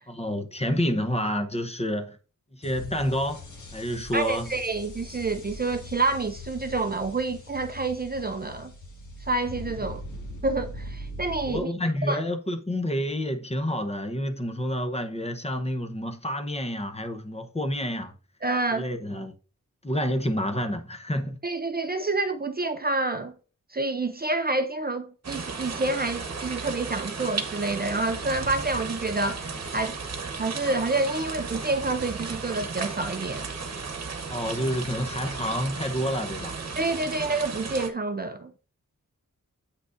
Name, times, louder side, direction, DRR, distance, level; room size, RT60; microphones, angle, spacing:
voice 1, 0.1-2.2 2.5-3.4 3.7-4.5 11.4-18.1 18.7-19.3 19.8-21.4 34.3-36.6, equal, 20° left, 0.9 m, -29 dB
sound 1, 2.6-11.6, left 1 dB, 70° left, 1.7 m, -41 dB
voice 2, 4.1-8.7 9.2-10.0 10.4-11.7 12.1-12.2 18.4-18.9 21.4-23.3 23.7-29.4 29.7-30.0 30.4-33.4 36.8-38.5, right 3 dB, 30° right, 0.5 m, -28 dB
sound 2, 25.2-37.9, right 4 dB, 55° right, 1.1 m, -35 dB
8.2 x 6.0 x 2.5 m
wide cardioid pair, 100°, 31 cm